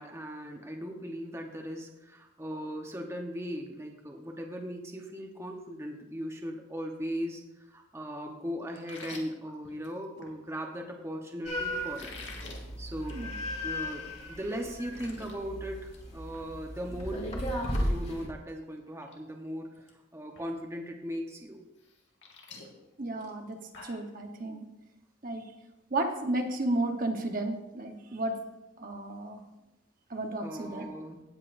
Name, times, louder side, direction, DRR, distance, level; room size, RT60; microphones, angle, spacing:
voice 1, 0.0-7.4 7.7-12.1 12.8-13.2 13.6-17.3 17.8-19.8 20.1-21.6 30.4-31.2, equal, 15° right, 1 dB, 1.0 m, -38 dB
sound 1, 8.7-10.3 11.8-12.6 13.0-13.2 13.6-13.7 14.2-14.3 14.5-15.3 15.7-16.0 16.3-16.5 18.3-18.4 18.9-19.2 19.4-19.9 20.3-20.4 21.8-24.1, left 4 dB, 70° left, 1.9 m, -48 dB
sound 2, 11.4-18.3, equal, 35° left, 1.8 m, -35 dB
voice 2, 23.0-24.7 25.2-25.5 25.9-28.3 28.8-29.4 30.1-30.9, right 2 dB, 45° right, 4 dB, 1.0 m, -33 dB
17.0 x 8.2 x 2.6 m, 0.98 s
head